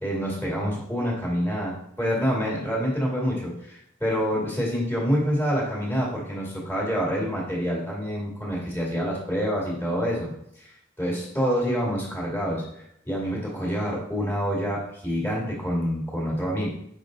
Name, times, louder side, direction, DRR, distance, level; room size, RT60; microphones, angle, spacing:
voice 1, 0.0-10.3 10.6-10.7 11.0-16.7, equal, 10° left, -4 dB, 2.3 m, -27 dB
7.8 x 5.6 x 3.9 m, 0.74 s
head